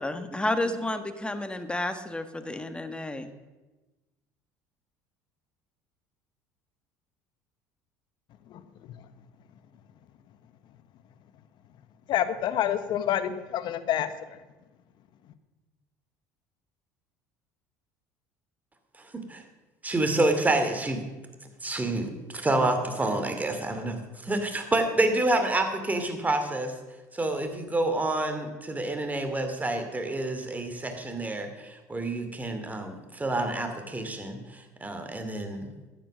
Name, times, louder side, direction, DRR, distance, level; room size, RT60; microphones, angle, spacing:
voice 1, 0.0-3.3, left 1 dB, 10° left, 9 dB, 1.5 m, -31 dB
voice 2, 12.1-14.4, left 10 dB, 60° left, 11 dB, 1.2 m, -28 dB
voice 3, 19.8-21.0 21.6-26.7 27.1-35.7, right 2 dB, 15° right, 6 dB, 2.6 m, -28 dB
13.5 x 9.8 x 6.3 m, 1.1 s
hypercardioid pair, 75°, 9 cm